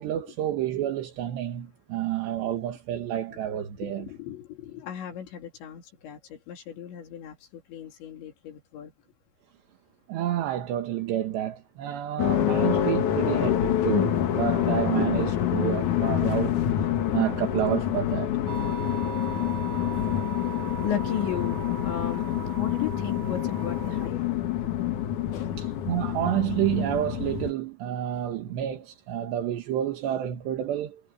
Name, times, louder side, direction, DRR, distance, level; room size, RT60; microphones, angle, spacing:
voice 1, 0.0-4.1 10.1-16.6 17.1-18.3 25.6-31.0, right 12 dB, 75° right, 3.8 m, -29 dB
voice 2, 3.8-8.9 15.0-15.8 19.9-20.0 20.7-24.4 25.3-25.6 29.7-29.9, left 10 dB, 85° left, 5.1 m, -36 dB
sound 1, 12.2-27.5, left 11 dB, 60° left, 2.3 m, -27 dB
sound 2, 18.5-24.1, right 9 dB, 40° right, 3.8 m, -40 dB
omnidirectional pair, 5.1 m